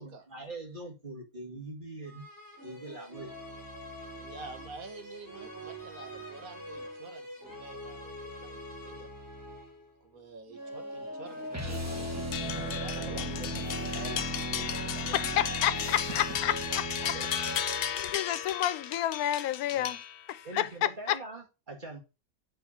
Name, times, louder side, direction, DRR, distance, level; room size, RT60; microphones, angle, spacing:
voice 1, 0.0-2.3 2.6-3.4 12.4-15.3 17.1-17.6 19.7-20.0 20.4-22.0, right 2 dB, 35° right, 2.2 m, -44 dB
sound 1, 2.0-9.9 10.5-18.4, right 1 dB, 15° left, 3.1 m, -43 dB
voice 2, 4.1-9.1 10.0-12.3 12.5-13.7 16.1-16.2, right 4 dB, 75° right, 1.7 m, -48 dB
sound 2, 11.5-17.6, right 1 dB, 10° right, 1.0 m, -37 dB
sound 3, 12.3-20.5, left 9 dB, 65° left, 0.6 m, -35 dB
voice 3, 15.4-17.1 17.9-20.0 20.3-21.2, left 12 dB, 85° left, 1.1 m, -30 dB
8.1 x 4.0 x 4.3 m
omnidirectional pair, 1.5 m